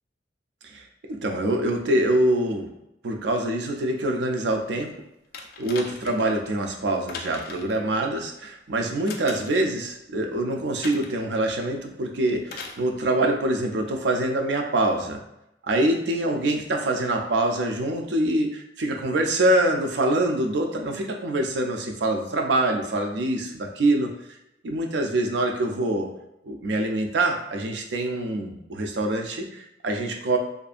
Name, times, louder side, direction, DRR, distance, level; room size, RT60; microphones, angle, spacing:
voice 1, 0.6-2.7 3.0-4.9 5.6-15.2 15.6-24.1 24.6-26.1 26.4-30.4, right 1 dB, 75° right, 2 dB, 0.4 m, -25 dB
sound 1, 5.3-6.3 7.1-7.8 9.1-9.7 10.8-11.2 12.5-12.8 13.9-14.0, left 4 dB, 55° left, 0.3 m, -39 dB
2.6 x 2.4 x 2.4 m, 0.82 s
head